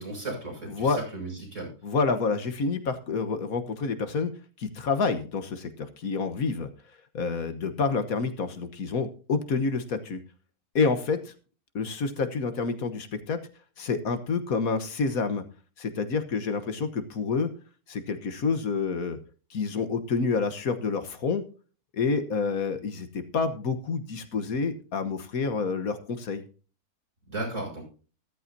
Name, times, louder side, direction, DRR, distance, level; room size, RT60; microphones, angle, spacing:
voice 1, 0.0-1.7 27.3-27.8, right 2 dB, 55° right, -1 dB, 6.8 m, -35 dB
voice 2, 0.7-1.0 1.8-4.3 4.6-6.7 7.1-10.2 10.7-11.3 11.7-13.4 13.8-15.4 15.8-17.5 17.9-19.2 19.5-21.4 21.9-26.4, left 4 dB, 70° left, 9 dB, 1.6 m, -28 dB
14.0 x 13.5 x 2.7 m, 0.36 s
omnidirectional pair, 1.6 m